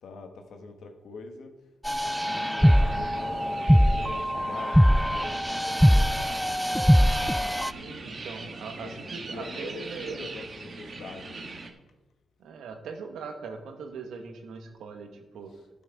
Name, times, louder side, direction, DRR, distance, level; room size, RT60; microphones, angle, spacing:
voice 1, 0.0-1.6 2.0-6.5 7.3-8.1 8.8-11.6 15.5-15.6, left 3 dB, 80° left, 5 dB, 1.4 m, -44 dB
sound 1, 1.8-7.7, equal, ahead, 0.4 m, -22 dB
sound 2, 2.1-11.7, right 3 dB, 50° right, 1.4 m, -41 dB
voice 2, 7.7-10.3 12.4-15.5, right 5 dB, 90° right, 5 dB, 1.4 m, -40 dB
12.5 x 6.1 x 4.7 m, 1.0 s
cardioid pair, 65°, 0 cm